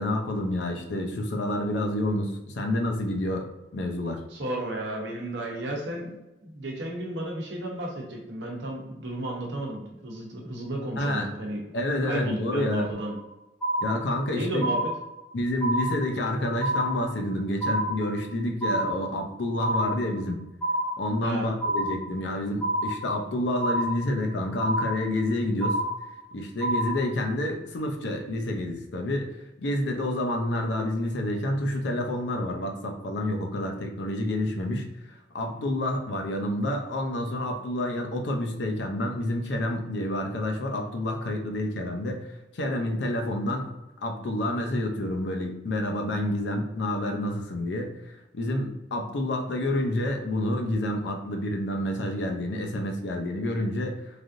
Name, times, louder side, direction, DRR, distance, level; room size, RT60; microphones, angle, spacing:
voice 1, 0.0-3.5 3.7-4.2 11.0-11.3 11.7-12.9 13.8-14.6 15.3-20.4 21.0-25.8 26.3-29.3 29.6-34.9 35.3-42.3 42.5-43.7 44.0-54.0, left 1 dB, 70° left, 2 dB, 0.5 m, -28 dB
voice 2, 4.3-6.1 6.4-11.6 12.0-13.2 14.3-14.8 21.2-21.5, right 1 dB, 80° right, -1 dB, 0.8 m, -33 dB
sound 1, 13.0-13.3 13.6-14.3 14.6-15.3 15.6-16.3 16.6-17.3 17.6-18.3 18.6-19.3 19.6-20.3 20.6-21.3 21.6-22.3 22.6-23.3 23.6-24.3 24.6-25.3 25.6-26.3 26.6-27.3, right 1 dB, 5° left, 0.8 m, -29 dB
3.3 x 2.6 x 2.5 m, 0.96 s
head